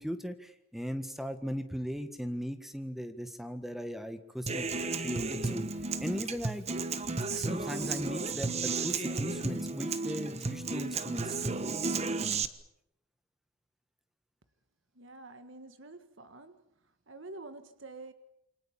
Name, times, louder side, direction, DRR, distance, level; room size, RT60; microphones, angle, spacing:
voice 1, 0.0-5.6 6.0-6.7 7.3-11.6, equal, ahead, 9 dB, 1.6 m, -38 dB
Human voice / Acoustic guitar, 4.5-12.4, right 3 dB, 30° right, 1.2 m, -33 dB
voice 2, 14.9-16.6 17.1-18.1, right 2 dB, 55° right, 10 dB, 1.6 m, -47 dB
28.0 x 24.5 x 7.3 m, 0.80 s
head